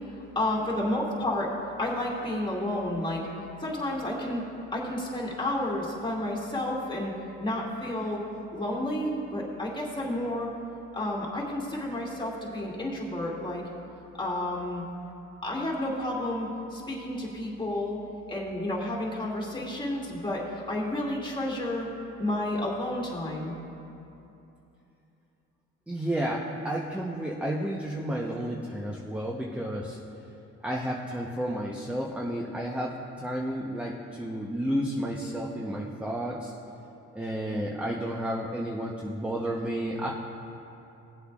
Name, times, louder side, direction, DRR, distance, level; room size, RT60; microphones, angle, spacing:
voice 1, 0.1-1.5 1.8-3.2 3.6-4.4 4.7-7.1 7.4-8.2 8.5-10.5 10.9-13.6 14.2-14.8 15.4-18.0 18.3-21.9 22.2-23.5, left 1 dB, 15° left, -4 dB, 2.2 m, -31 dB
voice 2, 25.9-30.0 30.6-36.5 37.1-40.1, right 1 dB, 5° right, -2 dB, 0.8 m, -31 dB
18.0 x 7.9 x 2.4 m, 2.8 s
cardioid pair, 90°, 30 cm